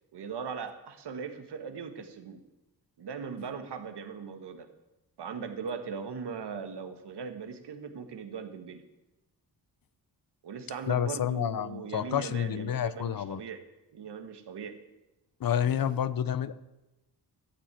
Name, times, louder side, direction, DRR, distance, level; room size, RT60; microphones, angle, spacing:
voice 1, 0.1-2.4 3.0-4.7 5.2-8.8 10.4-13.6 13.9-14.8 15.5-16.0, right 6 dB, 75° right, 8 dB, 1.6 m, -39 dB
voice 2, 10.9-13.4 15.4-16.5, left 9 dB, 55° left, 15 dB, 0.7 m, -29 dB
13.5 x 7.6 x 9.0 m, 1.0 s
wide cardioid pair, 115°, 41 cm